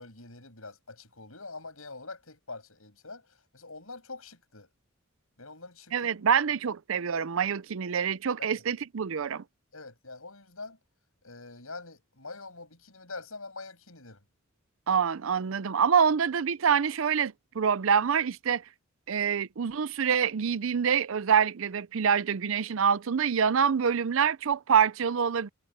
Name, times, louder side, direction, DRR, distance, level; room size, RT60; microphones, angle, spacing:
voice 1, 0.0-4.7 5.4-6.4 9.7-10.8 11.2-14.2, left 3 dB, 75° left, 7.8 m, -45 dB
voice 2, 5.9-9.4 14.9-18.6 19.1-25.5, right 7 dB, 65° right, 0.5 m, -26 dB
head